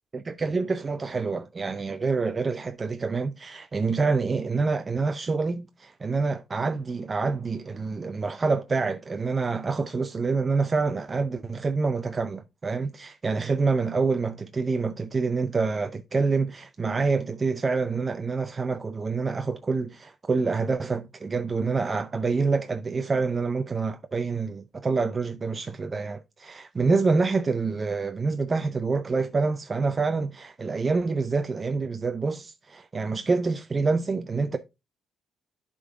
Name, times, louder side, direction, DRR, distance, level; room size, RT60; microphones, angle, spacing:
voice 1, 0.1-34.6, right 4 dB, 30° right, 0.4 m, -27 dB
11.0 x 3.8 x 3.5 m
cardioid pair, 90°, 0 cm